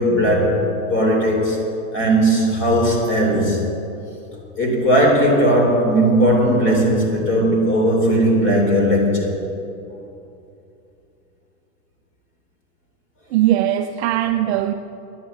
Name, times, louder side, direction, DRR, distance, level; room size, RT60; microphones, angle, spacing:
voice 1, 0.0-1.6 1.9-3.6 4.6-9.3, right 1 dB, 25° left, 0 dB, 3.3 m, -17 dB
voice 2, 13.3-14.7, right 13 dB, 45° right, 6 dB, 0.5 m, -19 dB
11.0 x 10.0 x 8.0 m, 2.7 s
supercardioid pair, 150°, 45 cm